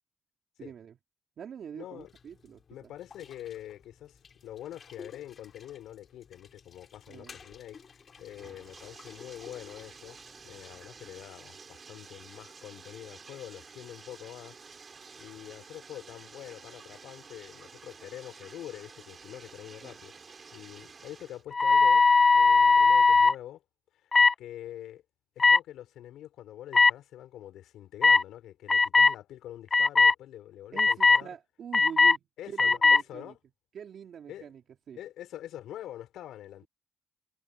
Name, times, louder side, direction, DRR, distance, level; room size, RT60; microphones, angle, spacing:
voice 1, 0.6-1.0 1.4-2.9 7.1-7.4 19.8-19.9 30.7-33.3 33.7-34.6 34.9-35.0, right 8 dB, 60° right, 2.9 m, -44 dB
voice 2, 1.7-2.1 2.7-7.8 8.2-10.2 10.4-14.6 15.2-20.1 20.5-22.0 22.3-23.6 24.0-24.1 24.4-25.0 25.3-31.3 32.4-32.8 33.1-33.4 34.3-34.5 34.9-36.7, left 12 dB, 80° left, 5.0 m, -45 dB
sound 1, 2.0-11.2, left 6 dB, 45° left, 4.3 m, -54 dB
Bathtub (filling or washing), 7.4-21.4, right 5 dB, 35° right, 4.0 m, -51 dB
sound 2, 21.5-23.3 24.1-24.3 25.4-25.6 26.7-26.9 28.0-28.2 28.7-29.1 29.7-30.1 30.8-31.2 31.7-32.2 32.6-33.0, left 4 dB, 30° left, 0.5 m, -19 dB
cardioid pair, 90°, 0 cm